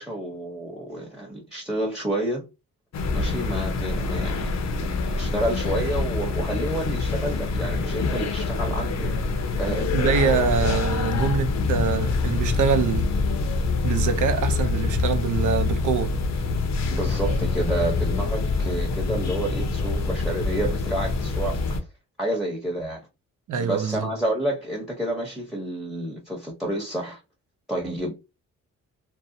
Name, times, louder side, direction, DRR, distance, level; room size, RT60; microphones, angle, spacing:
voice 1, 0.0-2.4 3.1-4.5 4.8-4.9 5.2-9.1 9.6-9.9 16.9-21.7 22.2-23.1 23.6-27.2 27.7-28.1, right 1 dB, ahead, 0.8 m, -29 dB
sound 1, 2.9-21.8, left 3 dB, 55° left, 0.6 m, -25 dB
voice 2, 9.9-13.1 13.8-16.1 23.5-24.1, right 6 dB, 65° right, 0.6 m, -24 dB
2.6 x 2.0 x 2.6 m
cardioid pair, 65°, 32 cm